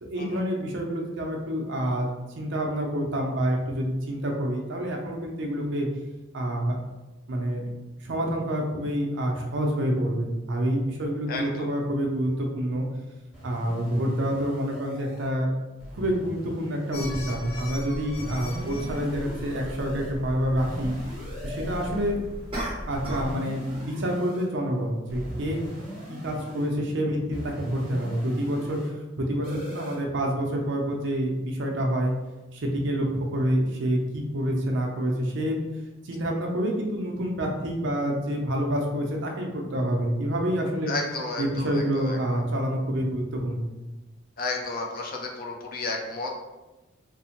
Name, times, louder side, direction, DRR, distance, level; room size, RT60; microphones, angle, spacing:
voice 1, 0.0-2.1 2.4-5.9 6.3-6.8 7.3-7.7 8.0-12.9 13.4-15.5 15.9-20.9 21.4-22.2 22.9-25.6 26.1-32.1 32.5-35.6 36.0-40.9 41.4-43.7, equal, 60° right, 1 dB, 0.6 m, -27 dB
voice 2, 11.3-11.7 40.9-42.4 44.4-46.4, left 3 dB, 45° left, 1 dB, 0.5 m, -32 dB
sound 1, 13.3-15.3 15.8-17.7 18.1-20.1 20.6-22.1 22.9-24.5 25.1-26.7 27.3-28.9 29.4-30.0, equal, 10° right, 1.3 m, -40 dB
sound 2, 16.9-23.3, equal, 70° left, 1.2 m, -38 dB
sound 3, 22.5-23.4 23.7-24.0, right 1 dB, 30° right, 0.8 m, -34 dB
3.3 x 2.1 x 2.9 m, 1.1 s
head